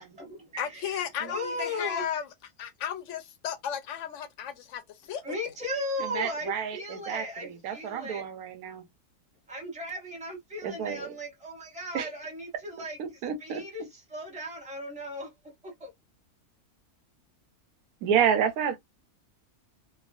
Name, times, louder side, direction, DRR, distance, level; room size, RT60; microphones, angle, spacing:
voice 1, 0.0-2.0 5.2-8.2 9.5-13.0 13.4-15.3 15.6-15.9, left 1 dB, 5° right, 0.9 m, -37 dB
voice 2, 0.6-2.3 2.6-4.8 5.1-5.3, left 9 dB, 65° left, 0.8 m, -34 dB
voice 3, 6.0-8.8 10.6-11.1 11.9-12.1 13.0-13.6 18.0-18.8, right 8 dB, 80° right, 1.2 m, -29 dB
3.0 x 2.3 x 2.4 m
omnidirectional pair, 1.5 m